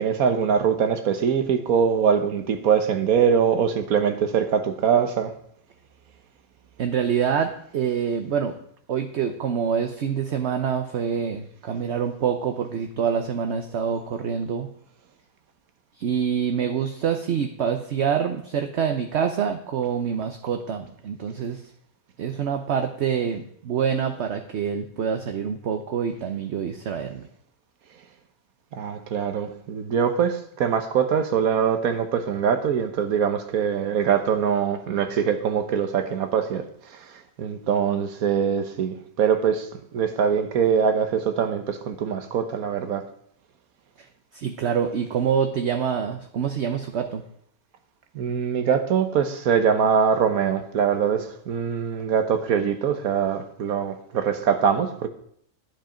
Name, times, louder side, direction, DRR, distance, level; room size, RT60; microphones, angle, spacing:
voice 1, 0.0-5.3 28.8-36.6 37.4-39.7 39.9-43.0 48.1-55.1, right 7 dB, 85° right, 8 dB, 1.4 m, -23 dB
voice 2, 6.8-8.6 8.9-14.7 16.0-21.6 22.2-27.2 44.3-47.2, right 7 dB, 55° right, 6 dB, 1.0 m, -26 dB
10.5 x 8.1 x 5.0 m, 0.68 s
omnidirectional pair, 1.5 m